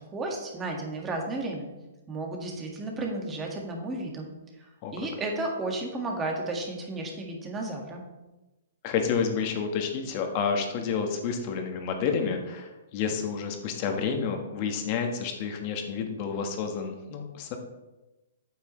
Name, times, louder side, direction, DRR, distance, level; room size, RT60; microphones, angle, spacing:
voice 1, 0.1-1.7 2.1-4.3 4.9-8.0, right 2 dB, 20° right, 1 dB, 1.8 m, -33 dB
voice 2, 8.8-17.6, left 6 dB, 40° left, 4 dB, 1.5 m, -29 dB
8.6 x 8.0 x 3.2 m, 1.1 s
hypercardioid pair, 130°, 0 cm